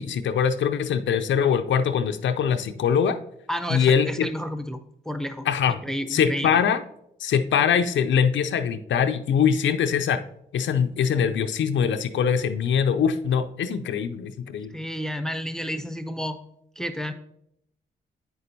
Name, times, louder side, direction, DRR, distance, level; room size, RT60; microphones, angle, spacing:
voice 1, 0.0-3.2 3.7-4.3 5.5-5.8 6.1-6.8 7.2-10.2 10.5-14.7, left 7 dB, 65° left, 9 dB, 0.5 m, -23 dB
voice 2, 3.5-4.8 5.1-5.5 5.8-6.6 14.7-16.4 16.8-17.1, equal, ahead, 8 dB, 0.7 m, -31 dB
8.3 x 6.8 x 2.7 m, 0.75 s
hypercardioid pair, 45°, 21 cm